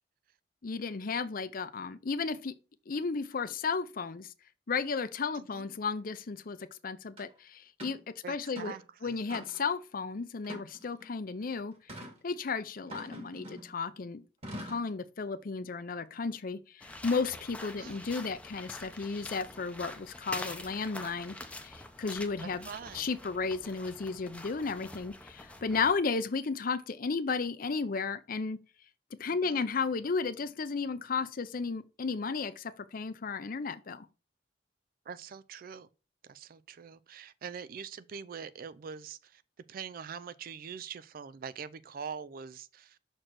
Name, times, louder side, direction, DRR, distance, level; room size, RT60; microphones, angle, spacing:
voice 1, 0.6-2.5 2.9-4.3 4.7-6.6 6.8-8.0 8.3-8.7 9.0-11.7 12.2-14.2 14.6-21.4 21.6-22.7 22.9-28.6 29.2-34.1, left 4 dB, 50° left, 0.6 m, -34 dB
sound 1, 7.2-7.3 7.8-8.0 8.4-8.8 9.3-9.7 10.4-11.1 11.9-12.2 12.9-13.8 14.4-14.9, equal, 35° right, 2.1 m, -44 dB
voice 2, 8.2-9.3 17.8-18.0 22.6-23.1 29.3-29.7 35.1-35.9 36.2-39.4 39.7-43.0, right 6 dB, 50° right, 0.4 m, -44 dB
sound 2, 16.8-26.0, left 2 dB, 10° left, 0.7 m, -45 dB
6.3 x 4.4 x 4.6 m
head